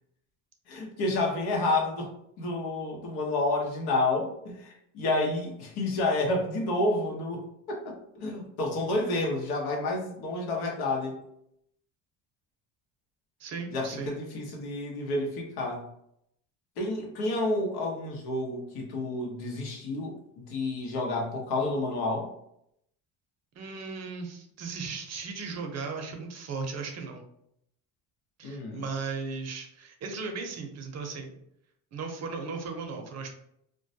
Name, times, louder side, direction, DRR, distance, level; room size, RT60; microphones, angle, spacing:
voice 1, 0.7-2.1 2.4-11.2 13.7-15.8 16.8-22.3 28.4-28.8, left 2 dB, 75° left, 0 dB, 0.8 m, -30 dB
voice 2, 13.4-14.2 23.6-27.2 28.4-31.3 31.9-33.3, right 4 dB, 45° right, 4 dB, 0.6 m, -36 dB
2.2 x 2.1 x 2.7 m, 0.74 s
supercardioid pair, 95°, 38 cm